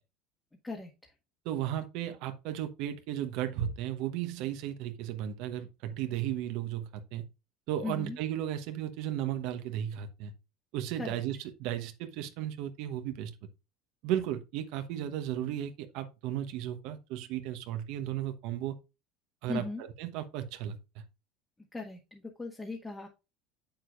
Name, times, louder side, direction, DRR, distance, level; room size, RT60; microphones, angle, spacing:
voice 1, 1.4-7.2 7.7-10.3 10.7-13.3 14.0-18.8 19.4-19.6 20.0-20.8, right 11 dB, 70° right, 1.0 m, -35 dB
voice 2, 7.8-8.2 10.9-11.2 19.5-19.8 21.7-23.1, left 3 dB, 15° left, 1.6 m, -38 dB
7.5 x 6.9 x 2.5 m
supercardioid pair, 90°, 0 cm